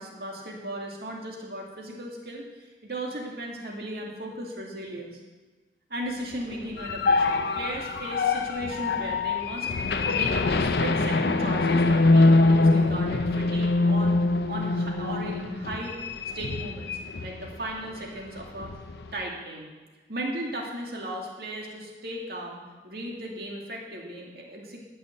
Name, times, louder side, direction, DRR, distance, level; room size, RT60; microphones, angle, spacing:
voice 1, 0.0-5.2 5.9-9.7 10.0-14.2 14.5-16.0 16.3-18.7 19.1-19.7 20.1-24.8, right 1 dB, 60° right, -1 dB, 2.3 m, -36 dB
sound 1, 6.5-17.5 17.9-18.0 18.4-19.1, left 3 dB, 65° left, 0.6 m, -24 dB
12.0 x 5.9 x 7.7 m, 1.3 s
head